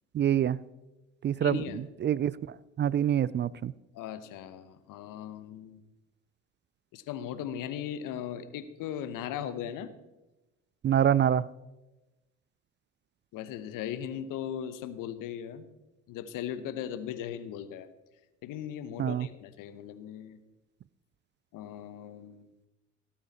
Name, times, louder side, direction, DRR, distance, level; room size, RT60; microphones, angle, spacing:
voice 1, 0.1-0.6 1.2-1.6 2.0-2.4 2.8-3.7 10.8-11.5 19.0-19.3, right 10 dB, 35° right, 21 dB, 0.4 m, -25 dB
voice 2, 1.4-1.8 3.9-5.8 6.9-9.9 13.3-15.7 16.1-17.9 18.4-20.4 21.5-22.5, left 9 dB, 70° left, 14 dB, 1.0 m, -38 dB
17.0 x 8.8 x 4.1 m, 1.0 s
hypercardioid pair, 60°, 34 cm